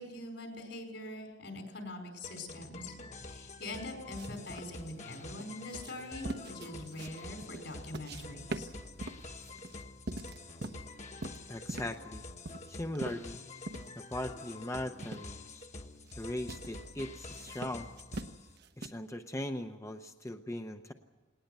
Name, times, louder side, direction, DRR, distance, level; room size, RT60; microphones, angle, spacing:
voice 1, 0.0-8.7, left 1 dB, 70° left, 4 dB, 5.0 m, -43 dB
sound 1, 2.2-18.5, left 2 dB, 40° left, 1.3 m, -47 dB
sound 2, 4.2-8.2 8.5-10.9 11.2-12.0 12.5-13.9 14.3-14.4 15.0-15.3 15.8-16.1 16.5-16.7 17.3-18.9, right 2 dB, 60° right, 1.0 m, -42 dB
voice 2, 11.5-12.2 12.7-13.4 14.0-15.7 16.2-17.9 18.8-20.9, left 1 dB, 15° left, 5 dB, 0.7 m, -39 dB
19.5 x 18.5 x 8.1 m, 1.2 s
head